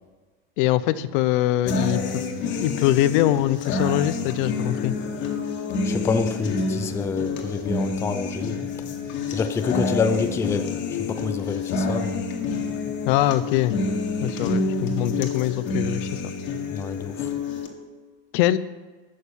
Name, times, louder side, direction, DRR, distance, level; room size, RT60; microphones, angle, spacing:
voice 1, 0.6-2.2 2.6-4.9 13.1-13.8 14.2-16.2 18.3-18.6, left 14 dB, 60° left, 15 dB, 0.6 m, -23 dB
sound 1, 1.7-17.7, left 3 dB, 40° left, 1.7 m, -28 dB
voice 2, 5.8-8.7 9.3-12.2 16.7-17.3, left 5 dB, 10° left, 8 dB, 0.4 m, -27 dB
11.5 x 6.6 x 7.0 m, 1.4 s
supercardioid pair, 155°, 29 cm